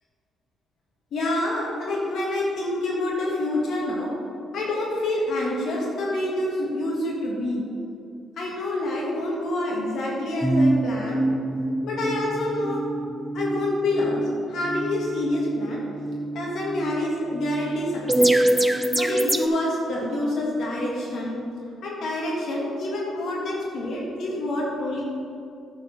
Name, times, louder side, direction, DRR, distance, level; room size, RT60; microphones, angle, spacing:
voice 1, 1.1-4.1 4.5-7.6 8.4-11.2 11.8-12.8 13.3-14.2 14.5-15.8 16.3-18.4 18.9-21.4 21.8-25.0, left 1 dB, 70° left, -3 dB, 1.6 m, -27 dB
sound 1, 10.4-19.5, right 1 dB, 5° right, 0.5 m, -25 dB
9.2 x 4.3 x 5.9 m, 2.5 s
cardioid pair, 90°, 0 cm